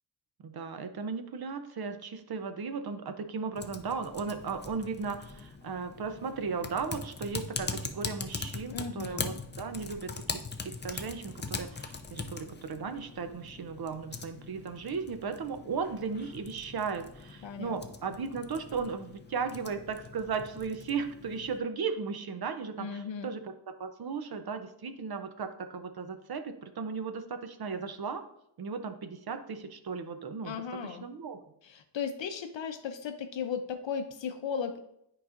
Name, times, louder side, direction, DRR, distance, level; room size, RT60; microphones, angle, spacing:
voice 1, 0.4-23.5 23.8-28.2 28.6-30.6 30.8-31.4, right 5 dB, 55° right, 9 dB, 0.6 m, -36 dB
Typing, 3.6-21.6, left 4 dB, 25° left, 0.4 m, -42 dB
voice 2, 8.7-9.4 17.4-17.8 22.8-23.3 30.4-31.1 31.6-34.8, left 6 dB, 75° left, 7 dB, 0.6 m, -36 dB
9.7 x 4.8 x 2.4 m, 0.77 s
wide cardioid pair, 135°, 45 cm